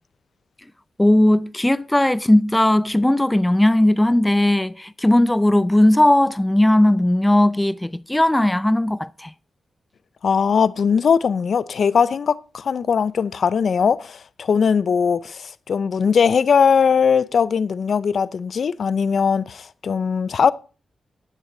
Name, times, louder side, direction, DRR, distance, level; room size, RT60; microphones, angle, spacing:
voice 1, 1.0-9.3, left 1 dB, 15° left, 0.4 m, -17 dB
voice 2, 10.2-20.5, left 6 dB, 65° left, 0.5 m, -20 dB
13.5 x 9.2 x 3.8 m
cardioid pair, 50°, 0 cm